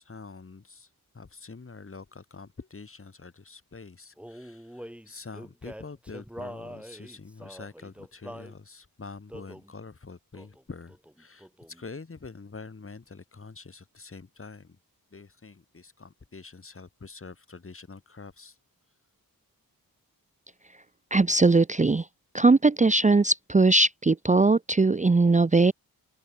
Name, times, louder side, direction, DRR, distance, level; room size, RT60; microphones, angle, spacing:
voice 1, 0.0-14.8 15.1-18.6, left 4 dB, 35° left, 3.8 m, -45 dB
Male singing, 4.2-8.6 9.3-9.7 10.3-10.6 10.9-11.8, equal, 5° right, 3.6 m, -44 dB
voice 2, 21.1-22.1 22.3-25.7, right 3 dB, 20° right, 0.7 m, -20 dB
open air
wide cardioid pair, 140°, 37 cm